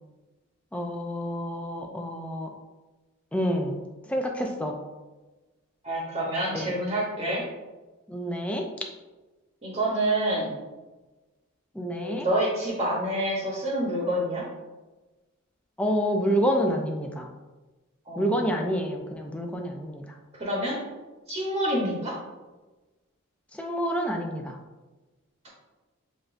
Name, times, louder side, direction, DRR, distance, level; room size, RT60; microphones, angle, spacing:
voice 1, 0.7-2.5 3.3-3.8 4.1-4.8 6.5-6.7 8.1-8.6 11.8-12.3 15.8-17.3 18.2-20.0 23.6-24.6, equal, 5° left, 2 dB, 0.4 m, -28 dB
voice 2, 5.8-7.4 9.6-10.5 11.8-14.5 18.1-18.5 20.4-20.8 21.3-22.2, right 1 dB, 30° right, -4 dB, 1.0 m, -27 dB
6.8 x 2.6 x 2.5 m, 1.2 s
head